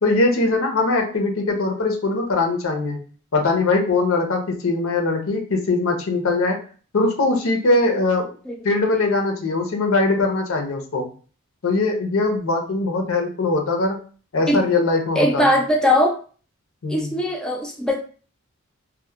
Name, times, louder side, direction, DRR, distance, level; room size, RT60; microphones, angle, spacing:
voice 1, 0.0-3.0 3.3-6.6 6.9-8.3 8.6-11.1 11.6-14.0 14.3-15.4 16.8-17.1, left 3 dB, 80° left, 3 dB, 0.6 m, -21 dB
voice 2, 15.2-16.1 16.9-18.0, left 1 dB, 5° left, 0 dB, 0.3 m, -19 dB
2.8 x 2.1 x 2.3 m, 0.40 s
head